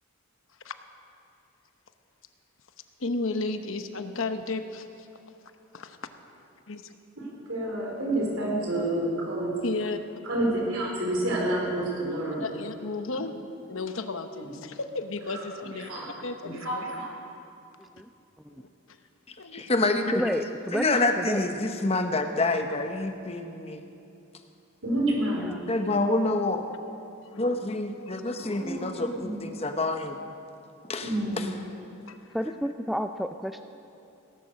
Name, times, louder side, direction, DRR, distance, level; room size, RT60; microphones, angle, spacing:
voice 1, 3.0-5.1 5.7-6.0 6.7-6.9 9.6-10.0 12.4-13.4 13.7-15.9 16.2-16.9 18.5-19.0 19.4-19.7 20.0-20.1 27.3-27.5 32.1-32.3, left 3 dB, 75° left, 8 dB, 0.9 m, -34 dB
voice 2, 7.5-9.5 10.2-12.4 15.3-15.4 15.8-16.1 16.6-17.1 24.8-25.5 28.4-29.4 31.0-31.5, right 1 dB, 85° right, -2 dB, 4.3 m, -29 dB
voice 3, 19.5-20.1 20.7-23.8 25.7-26.6 27.4-30.2 30.9-31.5, left 2 dB, 30° left, 6 dB, 0.9 m, -27 dB
voice 4, 20.1-21.4 25.4-25.6 32.3-33.7, equal, ahead, 8 dB, 0.3 m, -30 dB
18.0 x 11.5 x 6.5 m, 2.7 s
head